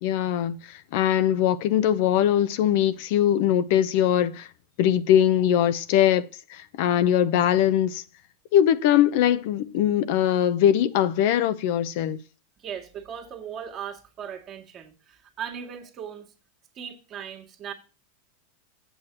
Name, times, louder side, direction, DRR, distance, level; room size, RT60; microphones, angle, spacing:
voice 1, 0.0-4.5 4.8-8.0 8.5-12.2, left 10 dB, 60° left, 0.7 m, -21 dB
voice 2, 12.6-16.3 16.7-17.7, right 8 dB, 35° right, 1.9 m, -38 dB
8.0 x 6.3 x 5.9 m
hypercardioid pair, 110°, 0 cm